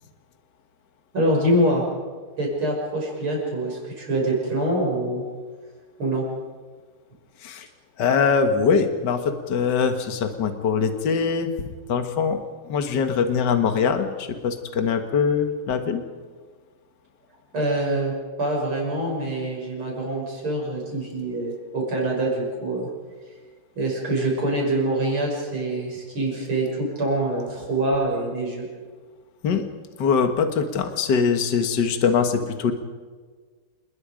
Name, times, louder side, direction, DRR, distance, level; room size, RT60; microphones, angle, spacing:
voice 1, 1.1-1.8 2.4-5.2 6.0-6.2 17.5-18.1 18.4-22.9 23.8-28.7, right 1 dB, 80° right, -2 dB, 7.0 m, -25 dB
voice 2, 8.0-11.5 11.9-12.4 12.7-16.0 29.4-29.6 30.0-32.7, left 6 dB, 55° left, 7 dB, 2.1 m, -22 dB
28.0 x 20.5 x 5.1 m, 1.5 s
omnidirectional pair, 2.3 m